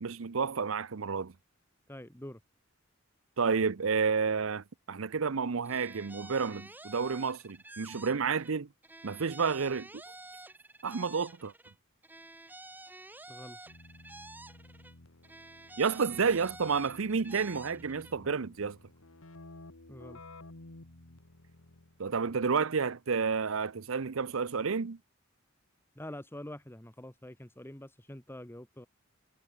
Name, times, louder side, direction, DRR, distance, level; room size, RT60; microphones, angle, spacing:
voice 1, 0.0-1.3 3.4-8.7 9.0-9.9 10.8-11.5 15.8-18.8 22.0-25.0, right 5 dB, 70° right, 0.7 m, -30 dB
voice 2, 1.9-2.4 13.3-13.6 18.2-18.3 19.9-20.2 26.0-28.9, left 1 dB, 10° left, 1.8 m, -46 dB
sound 1, 5.6-8.5 8.8-11.7 12.0-14.9 15.2-18.1, right 2 dB, 10° right, 1.4 m, -50 dB
Keyboard (musical), 13.7-22.1, left 2 dB, 85° left, 2.1 m, -53 dB
head